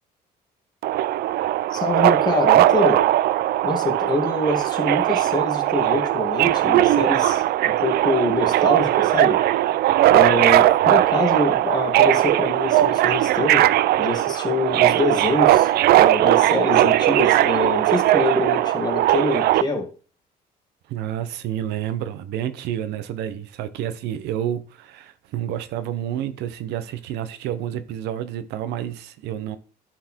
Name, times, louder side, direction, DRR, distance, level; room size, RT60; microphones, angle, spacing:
Subway metro underground, 0.8-19.6, right 14 dB, 70° right, 0.4 m, -19 dB
voice 1, 1.7-3.0 3.6-9.4 10.1-13.7 14.0-15.7 15.9-19.9, left 2 dB, 25° left, 2.3 m, -25 dB
voice 2, 20.9-29.6, right 11 dB, 85° right, 0.8 m, -29 dB
11.0 x 4.6 x 4.5 m
cardioid pair, 110°, 17 cm